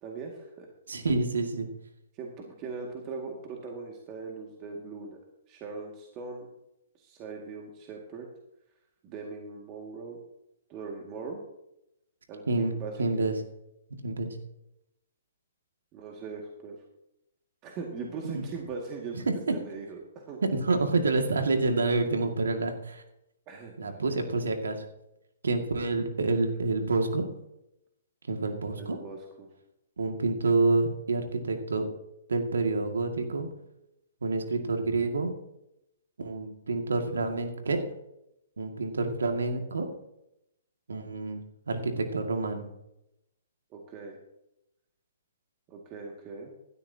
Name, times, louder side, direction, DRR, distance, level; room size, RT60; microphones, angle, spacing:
voice 1, 0.0-0.7 2.1-5.2 5.5-6.5 7.0-8.3 9.0-10.2 10.7-11.4 12.3-13.3 15.9-16.8 17.6-20.4 23.5-23.7 28.8-29.5 43.7-44.2 45.7-46.5, right 4 dB, 30° right, 0 dB, 2.0 m, -40 dB
voice 2, 0.9-1.7 12.5-12.7 13.0-13.3 14.0-14.4 18.3-18.4 19.1-19.5 20.4-23.0 23.8-24.9 25.4-27.3 28.3-29.0 30.0-31.9 32.3-33.5 34.2-35.3 36.2-37.8 38.6-39.9 40.9-41.4 41.7-42.7, right 3 dB, 85° right, 4 dB, 2.0 m, -28 dB
16.0 x 12.5 x 2.8 m, 0.84 s
hypercardioid pair, 140°, 0 cm